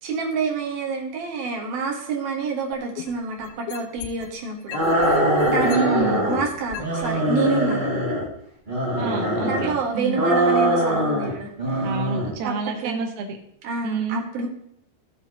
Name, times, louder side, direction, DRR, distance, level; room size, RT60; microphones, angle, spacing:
voice 1, 0.0-7.9 9.4-11.9 12.4-12.6 12.8-13.0 13.6-14.5, right 5 dB, 60° right, 0 dB, 3.3 m, -28 dB
sound 1, 2.7-4.3 4.7-7.1 7.7-7.8, left 11 dB, 85° left, 3.1 m, -37 dB
sound 2, 4.7-6.4 6.8-8.3 8.7-9.7 10.1-11.3 11.6-12.3, equal, 25° right, 1.0 m, -22 dB
voice 2, 5.6-6.3 9.0-10.3 11.8-13.4 13.8-14.2, right 4 dB, 80° right, 2 dB, 1.7 m, -28 dB
16.5 x 7.6 x 3.1 m, 0.74 s
omnidirectional pair, 5.5 m